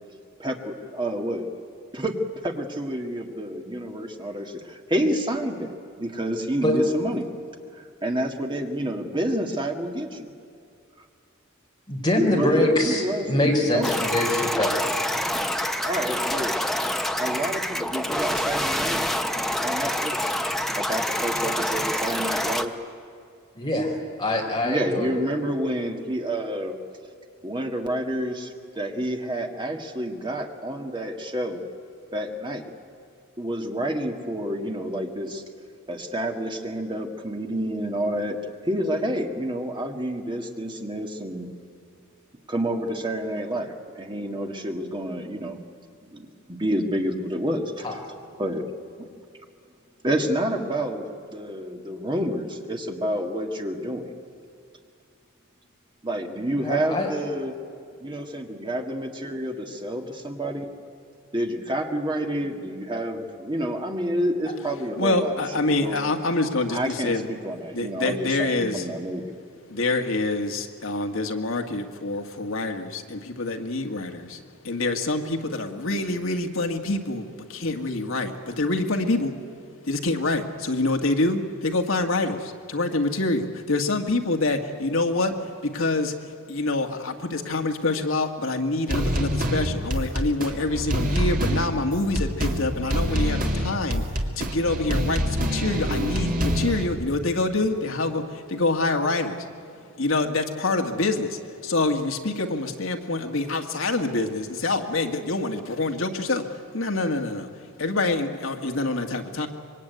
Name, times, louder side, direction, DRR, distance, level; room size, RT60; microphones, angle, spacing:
voice 1, 0.4-1.6 1.9-5.7 6.0-7.3 8.0-10.3 12.3-13.9 15.8-16.5 17.2-19.0 19.6-20.3 20.7-22.7 24.6-26.8 27.4-31.7 32.1-32.7 33.4-35.4 35.9-38.4 38.6-41.5 42.5-45.6 46.1-48.0 48.4-48.7 50.0-54.0 56.0-57.5 58.0-60.7 61.3-65.4 65.7-66.0 66.7-69.3, right 1 dB, 20° right, 3 dB, 1.9 m, -29 dB
voice 2, 11.9-14.8 23.6-23.9 24.2-25.1 47.8-48.0 56.6-57.1, left 1 dB, 20° left, -1 dB, 4.3 m, -23 dB
sound 1, 13.8-22.6, left 1 dB, ahead, 0.9 m, -26 dB
voice 3, 65.0-67.3 67.7-68.9 69.7-79.3 79.9-85.4 85.6-86.1 86.5-99.5 100.0-106.4 106.7-107.5 107.8-109.5, left 2 dB, 65° left, 4 dB, 1.8 m, -26 dB
sound 2, 88.9-96.8, equal, 40° right, 2.4 m, -25 dB
25.5 x 22.5 x 9.3 m, 2.4 s
head